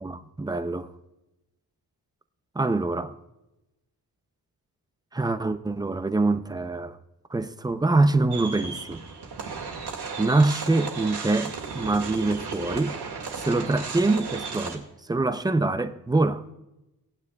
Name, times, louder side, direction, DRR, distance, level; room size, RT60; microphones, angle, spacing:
voice 1, 0.0-0.9 2.5-3.1 5.1-7.0 7.3-9.0 10.2-13.0 13.4-14.8 15.1-16.4, right 2 dB, 10° right, 0.5 m, -24 dB
sound 1, 8.3-14.8, right 5 dB, 85° right, 2.1 m, -35 dB
18.0 x 9.4 x 2.3 m
wide cardioid pair, 115°, 39 cm